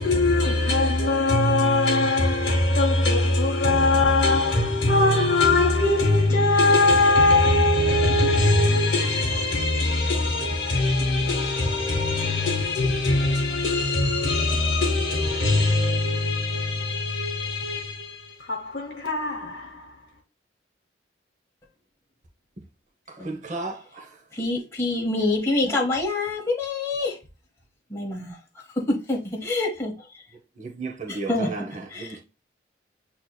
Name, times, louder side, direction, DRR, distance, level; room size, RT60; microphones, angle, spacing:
voice 1, 0.0-19.9, left 2 dB, 55° left, 0.9 m, -21 dB
voice 2, 23.2-24.1 30.6-31.6 32.0-32.2, right 3 dB, 40° right, 0.8 m, -33 dB
voice 3, 24.3-27.2 27.9-28.4 28.9-29.9 31.1-31.5 31.9-32.2, left 2 dB, 15° left, 0.9 m, -26 dB
7.9 x 2.9 x 2.2 m
head